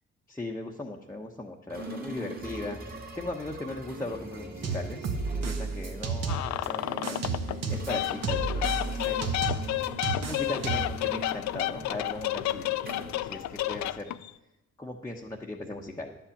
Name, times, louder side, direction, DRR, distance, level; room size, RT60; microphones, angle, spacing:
voice 1, 0.3-5.1 5.4-7.3 7.7-9.6 10.2-12.8 13.2-14.1 14.8-16.2, left 2 dB, 10° left, -1 dB, 1.0 m, -38 dB
sound 1, 1.7-14.0, right 1 dB, 30° right, 2.6 m, -42 dB
sound 2, 4.6-6.7 7.0-11.0, right 4 dB, 55° right, 1.4 m, -32 dB
sound 3, 6.3-7.6 7.9-14.3, left 15 dB, 70° left, 0.4 m, -31 dB
11.0 x 5.7 x 8.6 m, 0.98 s
cardioid pair, 90°, 30 cm